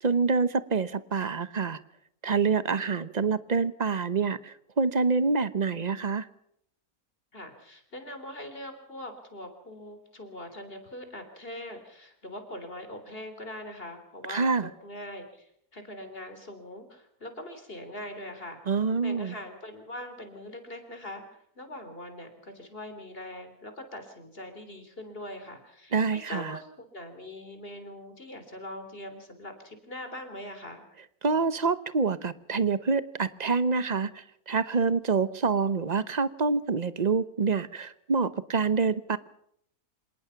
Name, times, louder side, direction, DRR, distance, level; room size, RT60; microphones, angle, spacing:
voice 1, 0.0-1.8 2.2-6.3 14.3-14.7 18.7-19.3 25.9-26.6 31.2-39.2, right 4 dB, 35° right, 14 dB, 0.9 m, -26 dB
voice 2, 7.3-18.6 19.0-30.8, left 1 dB, 40° left, 7 dB, 3.8 m, -42 dB
27.0 x 18.5 x 5.9 m, 0.71 s
omnidirectional pair, 1.6 m